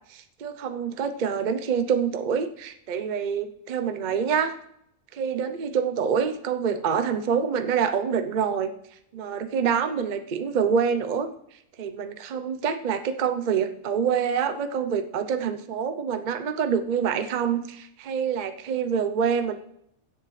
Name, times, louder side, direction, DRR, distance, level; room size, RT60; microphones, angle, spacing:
voice 1, 0.1-4.6 5.1-8.7 9.1-11.3 11.8-19.6, right 7 dB, 45° right, 9 dB, 0.7 m, -26 dB
16.0 x 8.1 x 3.2 m, 0.74 s
omnidirectional pair, 1.4 m